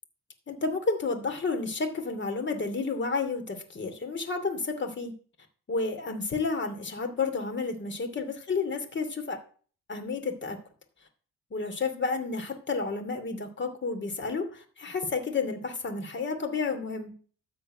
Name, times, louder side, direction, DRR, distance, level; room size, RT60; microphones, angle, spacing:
voice 1, 0.5-5.1 5.7-9.4 9.9-10.6 11.5-17.1, left 4 dB, 40° left, 6 dB, 2.7 m, -31 dB
13.5 x 4.5 x 8.8 m, 0.43 s
cardioid pair, 90°, 30 cm